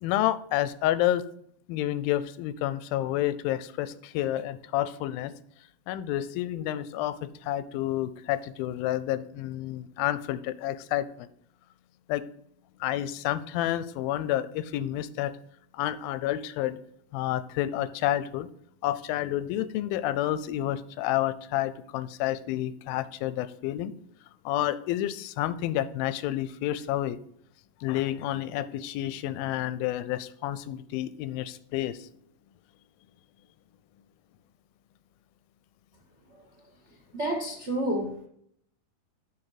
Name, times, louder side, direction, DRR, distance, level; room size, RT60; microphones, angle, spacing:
voice 1, 0.0-1.2 1.7-5.3 5.9-11.3 12.1-12.2 12.8-15.3 15.7-16.8 17.1-18.5 18.8-23.9 24.5-27.2 27.8-32.1, left 13 dB, 90° left, 14 dB, 2.4 m, -29 dB
voice 2, 37.1-38.3, right 1 dB, 40° right, 1 dB, 1.0 m, -29 dB
7.9 x 5.7 x 4.9 m, 0.66 s
omnidirectional pair, 4.1 m